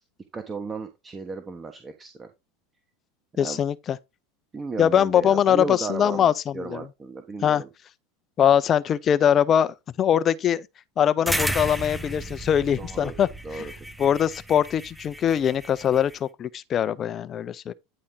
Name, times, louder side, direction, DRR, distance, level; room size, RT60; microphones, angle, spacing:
voice 1, 0.3-2.3 3.4-3.6 4.5-7.7 11.2-11.5 12.8-13.9, right 4 dB, 25° right, 1.2 m, -35 dB
voice 2, 3.4-4.0 4.8-6.9 7.4-7.6 8.4-10.7 11.0-13.7 14.0-17.7, left 9 dB, 35° left, 0.6 m, -22 dB
sound 1, 11.3-16.2, right 1 dB, ahead, 0.8 m, -33 dB
9.9 x 4.2 x 3.8 m
hypercardioid pair, 90°, 0 cm